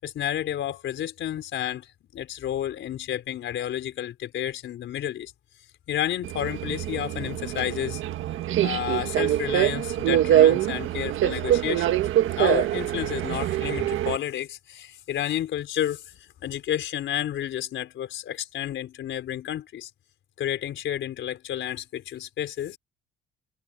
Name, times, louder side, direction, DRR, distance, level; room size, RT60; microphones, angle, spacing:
voice 1, 0.0-5.3 5.9-8.0 8.6-12.0 12.4-19.9 20.4-22.8, left 11 dB, 75° left, 4.7 m, -31 dB
Subway metro underground, 6.2-14.2, right 12 dB, 85° right, 1.6 m, -24 dB
cardioid pair, 90°, 20 cm